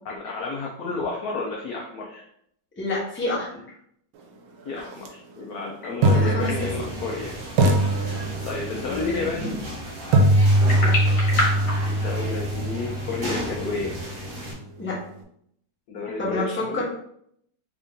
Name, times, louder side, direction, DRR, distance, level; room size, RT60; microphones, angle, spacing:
voice 1, 0.1-2.2 4.6-7.4 8.5-9.6 11.8-13.9 15.9-16.8, left 3 dB, 75° left, -1 dB, 0.8 m, -31 dB
voice 2, 2.8-3.6 6.1-7.0 8.8-9.4 10.8-11.1 14.8-14.9 16.2-16.8, left 2 dB, 10° left, -5 dB, 0.5 m, -29 dB
sound 1, 4.9-5.1 6.0-7.2 7.6-8.8 10.1-14.0, right 1 dB, 85° right, 1.5 m, -22 dB
sound 2, 6.3-12.6, left 1 dB, 55° left, 1.7 m, -32 dB
sound 3, 6.4-14.5, equal, 35° right, 1.1 m, -34 dB
3.7 x 2.6 x 3.6 m, 0.70 s
omnidirectional pair, 2.2 m